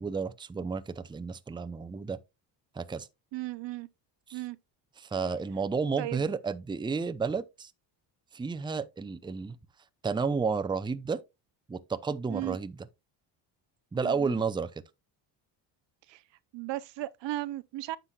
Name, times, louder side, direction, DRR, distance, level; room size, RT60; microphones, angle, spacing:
voice 1, 0.0-2.2 2.7-3.1 4.3-4.4 5.0-7.7 8.3-9.6 10.0-11.2 11.7-12.8 13.9-14.7, right 5 dB, 10° right, 0.6 m, -31 dB
voice 2, 3.3-3.9 4.3-4.6 6.0-6.2 12.3-12.6 14.0-14.4 16.1-16.2 16.5-18.0, right 16 dB, 65° right, 0.6 m, -36 dB
9.8 x 6.8 x 2.3 m
cardioid pair, 105°, 46 cm